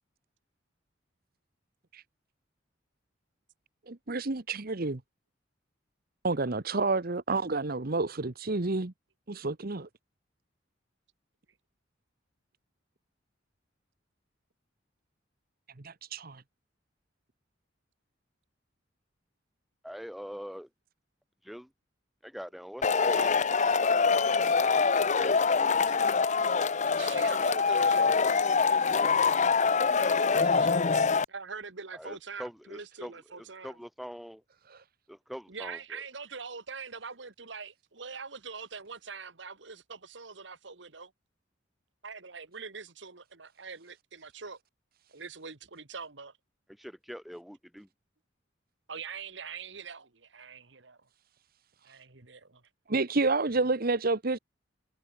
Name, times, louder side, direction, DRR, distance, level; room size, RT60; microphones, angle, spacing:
voice 1, 3.9-5.0 6.2-8.9 9.3-9.9 15.8-16.4 52.9-54.4, right 3 dB, 50° right, 1.1 m, -29 dB
voice 2, 19.8-20.7 21.4-21.7 22.2-24.0 24.4-25.3 29.7-31.1 31.9-33.1 33.4-34.4 35.1-36.0 46.8-47.9, equal, ahead, 3.2 m, -44 dB
Male speech man speaking / Shout / Clapping, 22.8-31.2, left 5 dB, 40° left, 0.7 m, -25 dB
voice 3, 27.0-28.1 30.0-33.8 35.5-41.1 42.0-44.6 45.1-46.3 48.9-51.0 51.8-52.6, right 5 dB, 65° right, 1.7 m, -43 dB
head